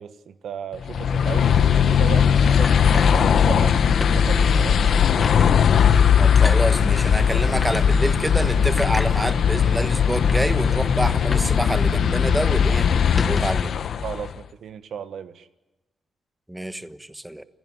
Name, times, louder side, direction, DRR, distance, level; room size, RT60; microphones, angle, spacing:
voice 1, 0.0-3.0 3.3-4.9 14.0-15.5, right 8 dB, 80° right, 1.5 m, -35 dB
sound 1, 0.8-14.3, left 7 dB, 65° left, 1.2 m, -19 dB
sound 2, 2.6-3.7 4.0-4.2 4.6-4.7 5.2-5.5 6.4-6.6 7.6-7.8 8.8-9.1 9.9-10.0 10.2-10.5 11.3-11.6 11.8-11.9 12.3-12.5 13.0-13.8, left 3 dB, 25° left, 1.3 m, -32 dB
voice 2, 6.2-12.9 13.3-13.7 16.5-17.4, right 1 dB, 5° right, 1.2 m, -27 dB
29.0 x 15.5 x 9.7 m
cardioid pair, 110°, 0 cm